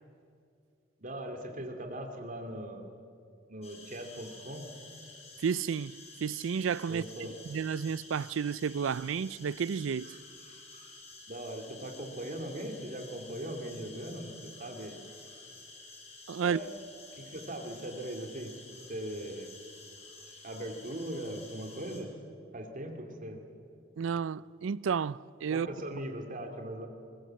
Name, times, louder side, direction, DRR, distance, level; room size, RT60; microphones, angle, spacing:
voice 1, 1.0-2.8 3.5-4.7 6.9-7.3 11.3-15.0 16.4-16.8 17.1-18.6 18.9-19.5 20.4-22.1 22.5-23.4 25.5-26.9, right 1 dB, 45° right, 2.5 m, -40 dB
sound 1, 3.6-22.0, left 3 dB, 35° left, 4.2 m, -51 dB
voice 2, 5.4-10.1 16.3-16.6 24.0-25.7, right 6 dB, 85° right, 0.4 m, -32 dB
20.5 x 20.5 x 7.7 m
head